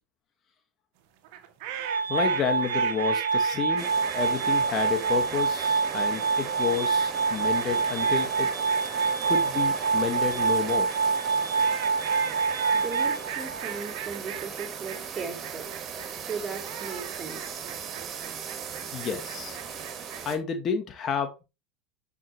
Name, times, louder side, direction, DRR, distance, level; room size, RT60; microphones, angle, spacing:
sound 1, 1.2-20.3, right 11 dB, 60° right, 1.6 m, -40 dB
Glass, 1.8-13.8, right 5 dB, 85° right, 1.5 m, -26 dB
voice 1, 2.1-3.9 4.1-8.5 9.2-10.9 18.9-19.6 20.3-21.4, left 7 dB, 40° left, 2.0 m, -30 dB
sound 2, 3.8-20.4, right 7 dB, 40° right, 2.9 m, -38 dB
voice 2, 12.7-15.7 16.2-17.6, right 5 dB, 25° right, 3.8 m, -37 dB
10.5 x 6.1 x 3.3 m
hypercardioid pair, 85°, 0 cm